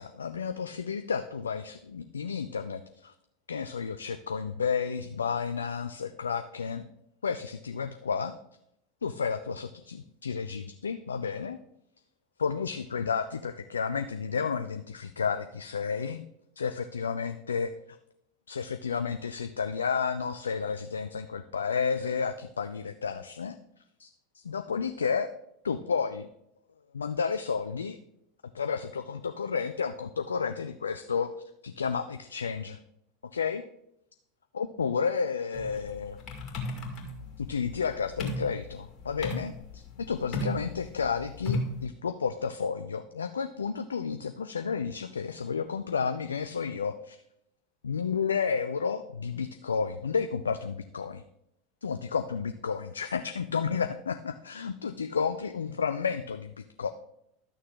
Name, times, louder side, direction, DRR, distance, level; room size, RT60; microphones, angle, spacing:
voice 1, 0.0-3.1 3.5-6.9 7.2-8.3 9.0-11.6 12.4-16.3 16.6-17.7 18.5-23.6 24.0-24.1 24.3-25.3 25.6-26.3 26.9-28.0 28.5-31.3 31.6-32.8 33.3-33.6 34.5-36.2 37.4-47.2 47.8-51.2 51.8-56.9, left 6 dB, 80° left, 9 dB, 0.3 m, -31 dB
sound 1, 35.5-41.9, left 2 dB, 45° left, 2.1 m, -35 dB
11.5 x 6.3 x 3.8 m, 0.78 s
figure-of-eight pair, 80°, 0 cm